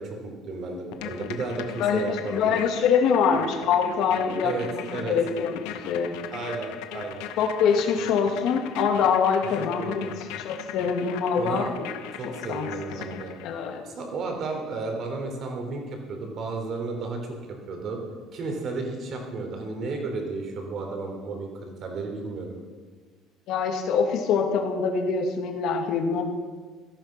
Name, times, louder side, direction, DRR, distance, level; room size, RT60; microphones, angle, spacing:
voice 1, 0.0-2.5 4.4-5.2 6.3-7.3 9.6-10.2 11.3-11.7 12.2-13.3 13.8-17.4 17.7-18.0 18.3-22.6, right 3 dB, 40° right, 3 dB, 3.5 m, -33 dB
sound 1, 0.9-13.7, left 11 dB, 85° left, 1.2 m, -39 dB
voice 2, 1.8-6.1 7.4-10.1 10.4-11.7 12.5-12.7 13.4-13.8 23.5-26.2, left 6 dB, 55° left, 3 dB, 2.5 m, -24 dB
17.0 x 14.0 x 6.0 m, 1.4 s
cardioid pair, 165°, 0 cm